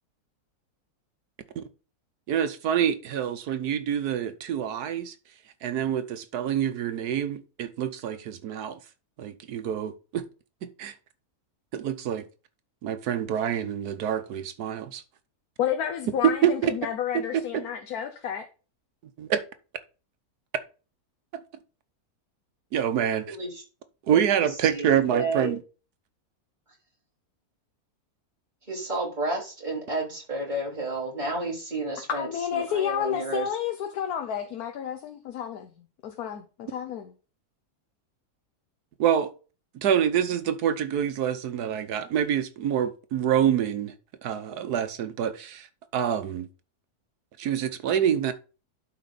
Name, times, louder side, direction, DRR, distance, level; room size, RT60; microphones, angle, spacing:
voice 1, 2.3-5.1 5.6-8.8 9.2-10.2 10.6-10.9 11.7-12.2 12.8-15.0 16.2-16.7 17.3-17.6 19.2-19.4 22.7-23.4 24.1-25.6 39.0-39.3 39.7-43.9 44.2-45.7 45.9-46.5 47.4-48.3, right 9 dB, 85° right, 1.4 m, -26 dB
voice 2, 15.6-18.5 32.2-37.1, left 9 dB, 75° left, 1.3 m, -31 dB
voice 3, 23.2-23.6 24.1-24.2 24.7-25.5 28.7-33.5, right 2 dB, 30° right, 3.5 m, -31 dB
11.5 x 4.3 x 4.0 m
omnidirectional pair, 1.6 m